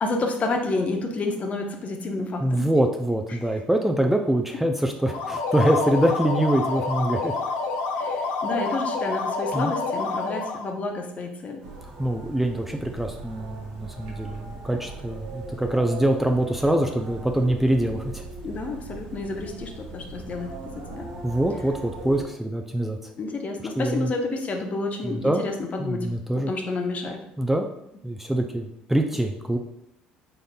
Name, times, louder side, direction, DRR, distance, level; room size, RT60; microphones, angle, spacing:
voice 1, 0.0-2.7 3.3-3.4 8.0-11.6 18.4-21.1 23.2-26.1 26.4-27.2, left 3 dB, 40° left, 3 dB, 0.7 m, -30 dB
voice 2, 2.4-7.3 9.5-9.7 12.0-18.2 21.2-23.1 23.8-24.1 25.0-25.4 25.8-26.5 27.4-27.7 28.0-29.6, right 1 dB, 5° right, 3 dB, 0.4 m, -24 dB
sound 1, 5.0-10.7, left 3 dB, 80° left, 0.5 m, -28 dB
sound 2, 11.6-22.2, right 2 dB, 80° right, 1.3 m, -39 dB
4.0 x 3.6 x 2.2 m, 0.78 s
hypercardioid pair, 70°, 4 cm